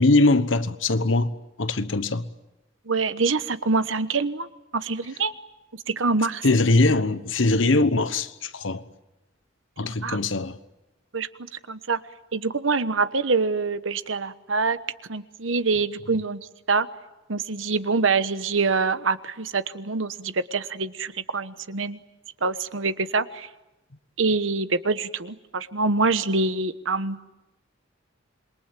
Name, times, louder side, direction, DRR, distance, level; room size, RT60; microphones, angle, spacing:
voice 1, 0.0-1.3 1.6-2.2 6.4-8.8 9.8-10.6, left 2 dB, 70° left, 1.2 m, -21 dB
voice 2, 2.9-4.5 4.7-5.3 6.0-6.4 9.8-10.2 11.1-11.3 11.7-12.0 12.3-14.8 15.1-16.4 16.7-16.9 17.3-22.0 22.4-23.5 24.2-27.2, right 4 dB, 85° right, 1.2 m, -25 dB
27.5 x 22.5 x 9.1 m
head